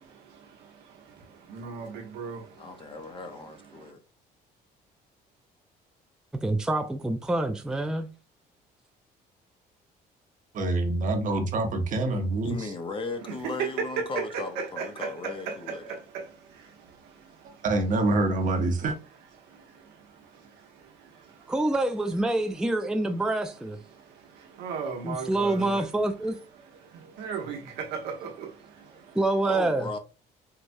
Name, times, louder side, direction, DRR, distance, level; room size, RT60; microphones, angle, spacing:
voice 1, 0.0-3.9 13.2-17.6 19.4-21.5 23.9-25.9 26.8-29.2, right 6 dB, 90° right, 1.0 m, -38 dB
voice 2, 2.6-4.0 12.4-15.8 29.4-30.0, left 3 dB, 30° left, 0.7 m, -37 dB
voice 3, 6.4-8.1 21.5-23.8 25.0-26.3 29.1-29.9, right 2 dB, 5° right, 0.4 m, -26 dB
voice 4, 10.5-12.7 17.6-19.0, right 2 dB, 50° right, 0.9 m, -26 dB
4.7 x 2.1 x 2.6 m
cardioid pair, 110°, 17 cm